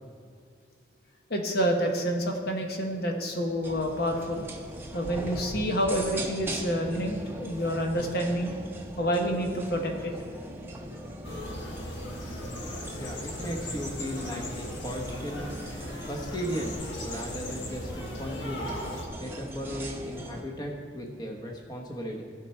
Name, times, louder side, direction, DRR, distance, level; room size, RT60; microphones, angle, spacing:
voice 1, 1.3-4.5 4.9-8.6 9.0-10.1, equal, 55° left, 3 dB, 1.1 m, -28 dB
sound 1, 3.6-20.4, right 1 dB, 10° right, 0.8 m, -40 dB
sound 2, 11.2-19.1, left 1 dB, 75° left, 1.4 m, -38 dB
voice 2, 13.0-15.7 16.1-18.8 19.2-22.2, equal, 20° left, 1 dB, 1.0 m, -36 dB
16.0 x 5.7 x 4.4 m, 2.3 s
head